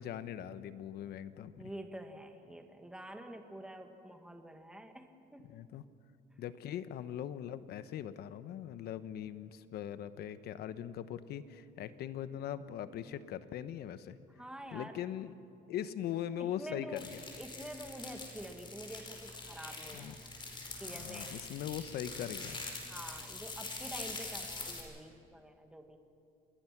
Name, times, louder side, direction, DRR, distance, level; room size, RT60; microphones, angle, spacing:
voice 1, 0.0-1.6 5.4-5.8 6.4-14.2 14.7-15.3 15.7-17.2 19.9-20.2 20.9-22.6, left 10 dB, 70° left, 13 dB, 1.0 m, -41 dB
voice 2, 1.6-5.6 14.4-15.0 16.4-17.1 17.4-20.2 20.8-21.3 22.9-26.0, right 1 dB, 5° right, 5 dB, 1.8 m, -47 dB
sound 1, 17.0-24.8, left 3 dB, 30° left, 4.8 m, -44 dB
27.5 x 20.5 x 6.0 m, 2.4 s
cardioid pair, 110°, 17 cm